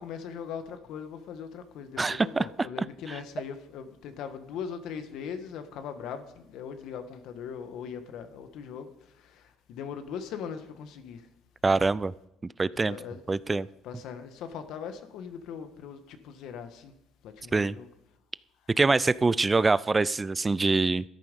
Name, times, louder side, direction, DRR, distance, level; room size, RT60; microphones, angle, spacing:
voice 1, 0.0-8.9 9.3-9.4 9.7-11.2 12.9-13.2 13.5-13.6 13.8-16.9 17.2-17.9, left 7 dB, 70° left, 9 dB, 1.5 m, -40 dB
voice 2, 2.0-2.5 3.1-3.2 11.6-12.1 12.6-13.0 13.3-13.7 17.5-17.8 18.8-21.0, right 3 dB, 20° right, 19 dB, 0.3 m, -24 dB
13.5 x 11.0 x 5.3 m, 0.84 s
cardioid pair, 110°, 0 cm